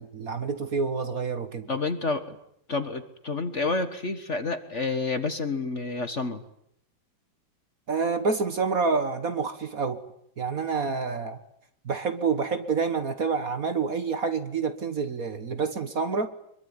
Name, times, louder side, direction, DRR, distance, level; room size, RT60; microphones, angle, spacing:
voice 1, 0.0-1.7 7.9-10.0 10.4-11.4 11.8-16.3, right 5 dB, 45° right, 10 dB, 1.7 m, -28 dB
voice 2, 1.7-2.4 2.7-6.4, left 3 dB, 35° left, 10 dB, 1.7 m, -29 dB
24.5 x 23.0 x 9.9 m, 0.74 s
omnidirectional pair, 2.3 m